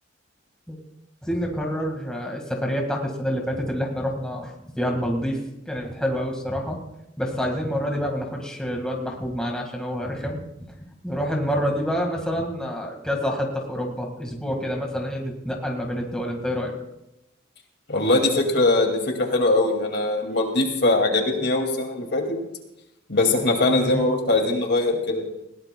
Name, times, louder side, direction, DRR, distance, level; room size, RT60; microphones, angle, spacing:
voice 1, 1.2-5.4 5.7-6.8 7.2-10.4 11.0-16.7 23.7-24.1, equal, 5° left, 0 dB, 1.8 m, -27 dB
voice 2, 17.9-22.2 23.1-25.2, left 2 dB, 60° left, 3 dB, 2.3 m, -21 dB
20.5 x 17.0 x 2.3 m, 0.88 s
head